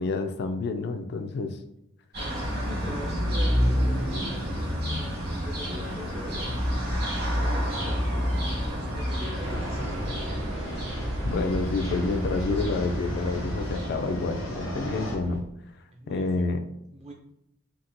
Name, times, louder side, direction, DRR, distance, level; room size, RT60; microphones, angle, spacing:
voice 1, 0.0-1.6 11.2-15.4 16.1-16.6, left 3 dB, 55° left, 7 dB, 0.3 m, -28 dB
sound 1, 2.1-14.4, equal, 50° right, 1.2 m, -29 dB
voice 2, 2.2-6.7 7.2-10.7 15.9-16.5 16.9-17.1, equal, 30° right, 1 dB, 0.4 m, -42 dB
sound 2, 5.0-15.1, equal, 90° left, 0.7 m, -42 dB
Fixed-wing aircraft airplane, 9.4-15.4, equal, 85° right, 0.6 m, -34 dB
4.0 x 2.1 x 2.5 m, 0.80 s
head